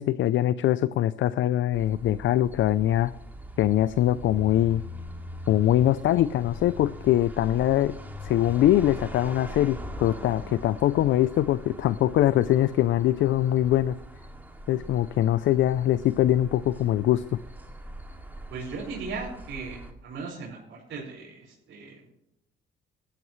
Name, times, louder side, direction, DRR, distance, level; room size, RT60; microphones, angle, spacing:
voice 1, 0.0-3.1 3.6-4.8 5.5-7.9 8.2-14.0 14.7-17.4, left 13 dB, 75° left, 15 dB, 0.5 m, -23 dB
sound 1, 1.7-19.9, equal, 10° right, 2.4 m, -42 dB
voice 2, 18.5-22.0, right 4 dB, 75° right, -6 dB, 5.2 m, -37 dB
18.0 x 13.0 x 3.2 m, 0.80 s
cardioid pair, 90°, 20 cm